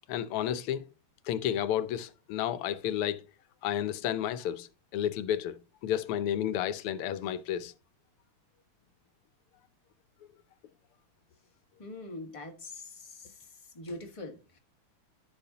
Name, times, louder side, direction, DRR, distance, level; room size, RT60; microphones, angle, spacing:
voice 1, 0.1-0.9 1.3-3.2 3.6-7.7, left 10 dB, 90° left, 1.6 m, -31 dB
voice 2, 11.8-13.3 13.7-14.6, left 2 dB, 15° left, 1.4 m, -43 dB
14.5 x 5.5 x 2.8 m
omnidirectional pair, 2.4 m